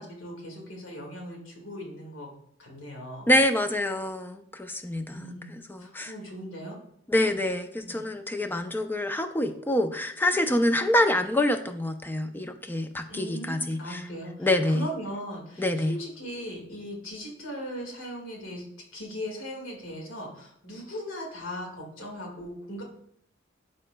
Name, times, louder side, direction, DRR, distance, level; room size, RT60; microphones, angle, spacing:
voice 1, 0.0-2.3 2.6-3.3 5.1-6.8 7.8-8.0 13.1-18.7 18.9-22.8, equal, 75° left, 0 dB, 1.9 m, -39 dB
voice 2, 3.3-6.1 7.1-14.0 14.4-14.9 15.6-15.9, left 1 dB, 10° left, 7 dB, 0.5 m, -26 dB
12.5 x 4.3 x 2.2 m, 0.67 s
head